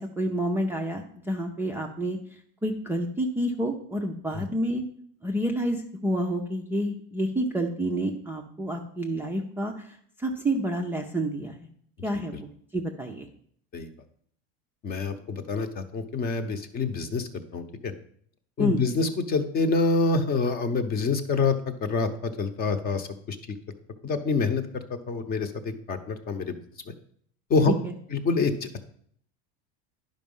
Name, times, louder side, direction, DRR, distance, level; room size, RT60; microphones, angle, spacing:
voice 1, 0.0-2.2 2.6-4.8 5.2-9.9 10.2-11.6 12.0-13.3 18.6-18.8 27.7-27.9, right 1 dB, 5° right, 1 dB, 0.4 m, -29 dB
voice 2, 14.8-17.9 18.6-23.4 24.0-24.6 24.9-26.5 27.5-27.7 28.1-28.8, left 4 dB, 30° left, 9 dB, 0.8 m, -26 dB
10.5 x 5.2 x 5.4 m, 0.63 s
cardioid pair, 155°, 30 cm